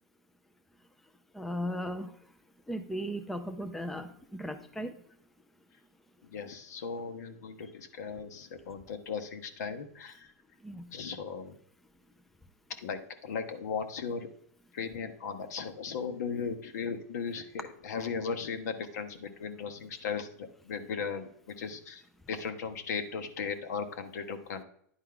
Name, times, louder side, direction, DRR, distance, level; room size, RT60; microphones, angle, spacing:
voice 1, 1.3-2.2 2.7-5.0 10.6-10.9, equal, ahead, 7 dB, 0.4 m, -36 dB
voice 2, 6.2-10.3 10.9-11.6 12.8-14.3 14.7-22.0 22.3-24.6, left 5 dB, 70° left, 8 dB, 1.1 m, -37 dB
10.0 x 4.5 x 3.8 m, 0.64 s
hypercardioid pair, 135°, 9 cm